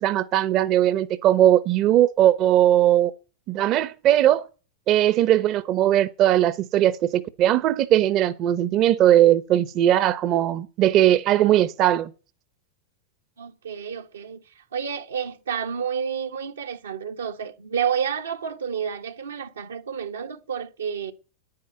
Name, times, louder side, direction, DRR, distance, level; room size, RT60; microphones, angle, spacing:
voice 1, 0.0-3.1 3.5-4.5 4.9-12.1, right 12 dB, 45° right, 0.9 m, -19 dB
voice 2, 13.4-21.1, right 7 dB, 85° right, 1.5 m, -30 dB
10.0 x 9.7 x 9.0 m
hypercardioid pair, 100°, 0 cm